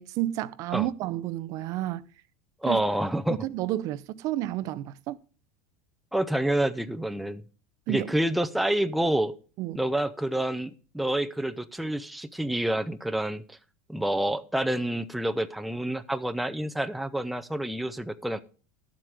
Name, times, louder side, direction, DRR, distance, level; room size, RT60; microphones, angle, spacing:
voice 1, 0.0-2.0 2.7-2.8 3.4-5.2 7.9-8.1 9.6-9.8, right 14 dB, 50° right, 0.5 m, -31 dB
voice 2, 2.6-3.4 6.1-7.4 7.9-9.3 9.7-13.6 13.9-18.4, right 1 dB, ahead, 0.5 m, -28 dB
12.0 x 7.6 x 4.9 m
supercardioid pair, 135°, 7 cm